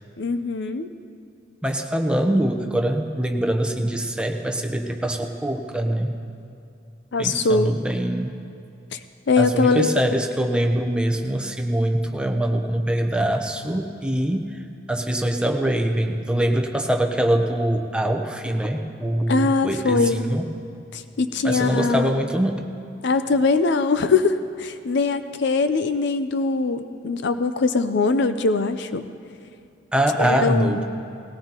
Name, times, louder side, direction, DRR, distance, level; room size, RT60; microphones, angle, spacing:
voice 1, 0.2-0.9 7.1-7.7 8.9-9.0 9.3-9.9 19.3-20.3 20.9-22.2 23.0-29.1 30.2-30.8, left 4 dB, 65° left, 10 dB, 0.6 m, -22 dB
voice 2, 1.6-6.2 7.2-8.4 9.4-20.5 21.4-22.6 29.9-30.8, right 1 dB, 5° right, 3 dB, 0.8 m, -23 dB
19.0 x 17.5 x 2.9 m, 2.5 s
head